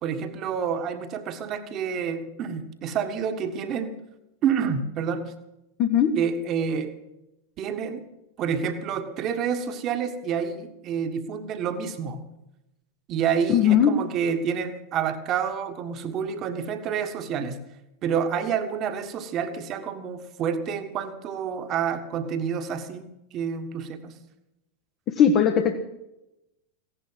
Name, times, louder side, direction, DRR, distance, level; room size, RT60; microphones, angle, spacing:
voice 1, 0.0-4.0 4.4-5.3 6.2-6.9 7.6-8.0 8.4-12.2 13.1-17.6 18.0-24.1, right 7 dB, 35° right, 9 dB, 1.6 m, -28 dB
voice 2, 5.8-6.2 13.5-14.0 25.1-25.8, left 8 dB, 35° left, 5 dB, 1.2 m, -19 dB
16.0 x 11.0 x 7.6 m, 0.91 s
figure-of-eight pair, 90°, 0 cm